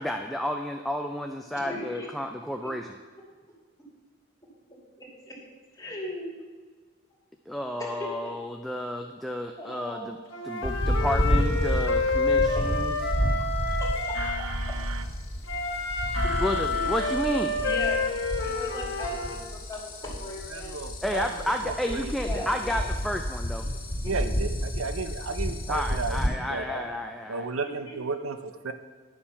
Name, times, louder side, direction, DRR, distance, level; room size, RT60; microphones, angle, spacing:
voice 1, 0.0-2.9 7.5-10.2 10.4-13.0 16.4-17.6 21.0-23.6 25.7-27.5, equal, ahead, 3 dB, 0.4 m, -31 dB
voice 2, 1.5-2.1 2.6-2.7 4.7-5.4 5.7-6.4 7.8-8.3 9.6-10.2 12.5-12.6 13.4-14.8 16.2-16.3 16.7-16.8 17.6-18.1 18.3-20.8 22.1-22.9 24.2-24.3 26.7-26.8 27.6-28.0, left 1 dB, 15° left, -4 dB, 2.5 m, -38 dB
Wind instrument woodwind instrument, 10.3-14.5 15.5-19.4, left 3 dB, 65° left, 1.3 m, -28 dB
sound 1, 10.6-26.3, equal, 45° left, 2.5 m, -30 dB
voice 3, 14.1-15.0 16.1-17.1 20.5-22.4 24.1-26.7 27.3-28.7, right 4 dB, 90° right, 9 dB, 0.7 m, -34 dB
10.5 x 7.2 x 5.6 m, 1.5 s
head